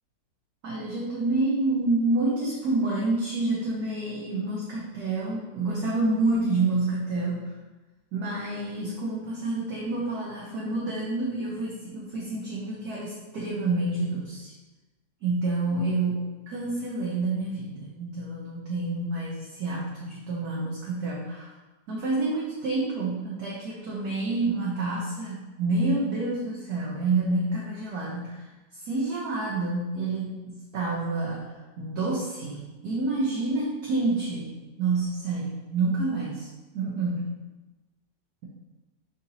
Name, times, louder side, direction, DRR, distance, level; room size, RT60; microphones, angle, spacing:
voice 1, 0.6-7.5 8.1-14.5 15.2-21.5 21.9-36.5 36.7-37.3, right 2 dB, 65° right, -4 dB, 1.1 m, -28 dB
6.4 x 2.8 x 2.8 m, 1.1 s
omnidirectional pair, 2.0 m